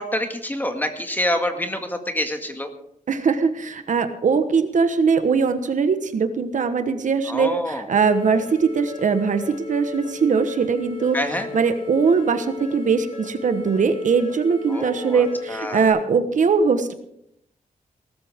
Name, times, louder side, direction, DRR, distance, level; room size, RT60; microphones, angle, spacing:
voice 1, 0.0-2.7 7.3-7.9 11.1-11.5 14.7-15.9, left 1 dB, 15° left, 5 dB, 1.9 m, -27 dB
voice 2, 3.1-16.9, right 5 dB, 65° right, 9 dB, 1.3 m, -21 dB
sound 1, 7.9-15.9, left 5 dB, 65° left, 5.7 m, -36 dB
19.5 x 13.0 x 3.7 m, 0.74 s
wide cardioid pair, 105°, 14 cm